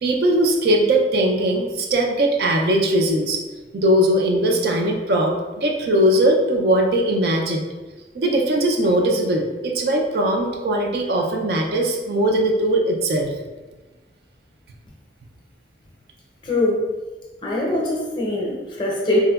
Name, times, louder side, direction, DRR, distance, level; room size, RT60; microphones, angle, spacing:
voice 1, 0.0-3.4 3.7-7.7 8.1-13.3, right 1 dB, 55° right, 1 dB, 0.3 m, -20 dB
voice 2, 16.4-16.8 17.4-19.2, left 2 dB, 25° left, -4 dB, 0.5 m, -22 dB
3.5 x 2.1 x 2.2 m, 1.2 s
head